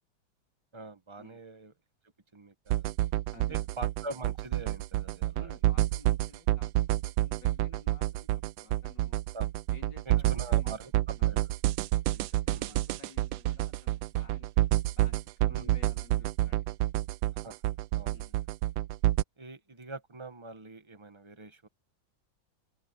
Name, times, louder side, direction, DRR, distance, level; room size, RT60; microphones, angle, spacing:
voice 1, 0.7-1.7 2.3-2.9 3.5-5.6 9.3-9.5 10.0-11.4 12.5-12.8 15.5-15.7 17.3-17.6 18.0-18.2 19.4-21.7, right 2 dB, 20° right, 0.9 m, -44 dB
sound 1, 2.7-19.2, right 15 dB, 75° right, 1.2 m, -28 dB
voice 2, 3.3-3.7 5.3-8.3 8.6-9.2 9.7-10.9 11.2-11.4 12.1-16.7 18.1-18.4, left 3 dB, 60° left, 4.3 m, -55 dB
open air
omnidirectional pair, 2.2 m